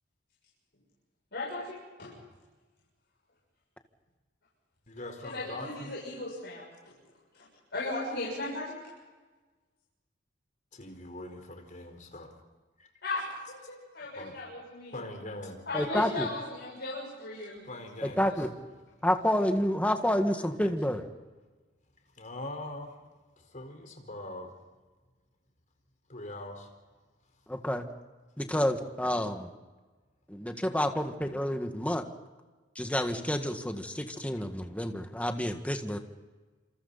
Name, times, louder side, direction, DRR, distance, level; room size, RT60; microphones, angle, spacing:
voice 1, 1.3-2.1 5.2-6.9 7.3-8.8 13.0-14.9 15.7-17.6 18.2-18.3, left 2 dB, 65° left, -5 dB, 7.2 m, -37 dB
voice 2, 4.9-5.9 10.7-12.3 12.8-12.9 14.2-14.3 14.9-15.6 17.6-18.2 22.2-22.9 23.5-24.5 26.1-26.7, left 1 dB, 45° left, 3 dB, 4.5 m, -42 dB
voice 3, 15.7-16.3 18.0-18.5 19.0-21.1 27.5-27.9 28.4-29.5 30.3-32.0 32.8-36.0, left 1 dB, 10° left, 5 dB, 1.7 m, -29 dB
27.5 x 27.5 x 4.2 m, 1.3 s
head